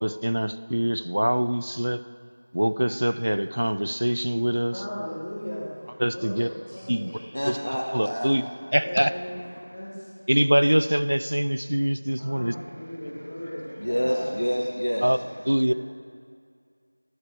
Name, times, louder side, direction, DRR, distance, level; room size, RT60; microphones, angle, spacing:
voice 1, 0.0-2.0 2.5-4.7 6.0-6.5 6.9-7.1 7.5-7.6 7.9-9.1 10.3-12.5 15.0-15.2 15.5-15.7, equal, 60° right, 13 dB, 0.3 m, -24 dB
voice 2, 4.7-5.7 6.1-7.3 8.8-10.1 12.2-14.3 15.5-15.7, equal, 25° left, -8 dB, 1.1 m, -36 dB
voice 3, 7.3-8.3 13.8-15.1, equal, 70° left, -2 dB, 1.2 m, -27 dB
11.0 x 7.6 x 4.4 m, 2.2 s
figure-of-eight pair, 175°, 0 cm